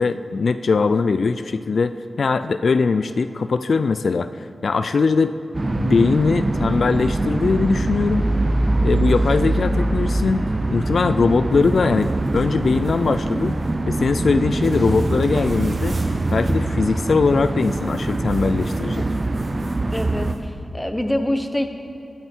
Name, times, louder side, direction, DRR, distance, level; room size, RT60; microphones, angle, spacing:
voice 1, 0.0-5.3 5.8-8.3 8.8-10.4 10.7-13.6 13.9-16.0 16.3-19.1, left 4 dB, 70° left, 11 dB, 0.4 m, -20 dB
sound 1, 5.5-20.3, right 2 dB, 35° right, 0.6 m, -23 dB
sound 2, 11.5-13.8 14.6-16.5 17.2-20.5, right 1 dB, 60° right, 2.2 m, -42 dB
voice 2, 19.9-21.7, left 1 dB, 10° left, 6 dB, 1.1 m, -25 dB
21.5 x 8.9 x 4.5 m, 2.9 s
wide cardioid pair, 100°, 0 cm